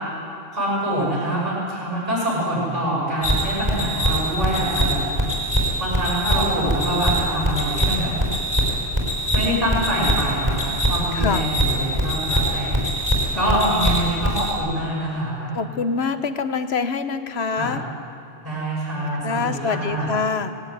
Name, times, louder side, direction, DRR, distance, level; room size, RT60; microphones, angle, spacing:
voice 1, 0.5-5.0 5.8-8.1 9.3-12.8 13.3-15.5 17.6-17.8 18.4-20.1, right 1 dB, 35° right, -7 dB, 7.1 m, -25 dB
sound 1, 3.2-14.5, right 1 dB, 20° right, 4.7 m, -23 dB
voice 2, 11.1-11.4 13.3-13.9 15.5-17.8 19.2-20.5, left 5 dB, 85° left, 10 dB, 1.3 m, -25 dB
19.5 x 16.5 x 9.3 m, 2.6 s
omnidirectional pair, 1.0 m